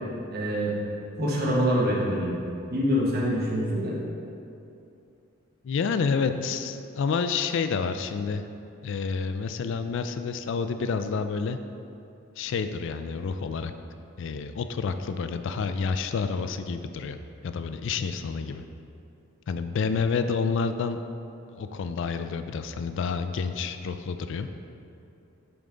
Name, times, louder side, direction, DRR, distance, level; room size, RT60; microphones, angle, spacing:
voice 1, 0.3-0.7 1.2-2.4 2.7-4.0, equal, 50° right, -4 dB, 1.2 m, -25 dB
voice 2, 5.6-8.4 8.8-11.6 12.4-13.7 14.2-17.2 17.4-18.6 19.5-21.0 21.5-24.5, left 5 dB, 65° left, 9 dB, 0.3 m, -29 dB
8.9 x 3.5 x 3.8 m, 2.7 s
head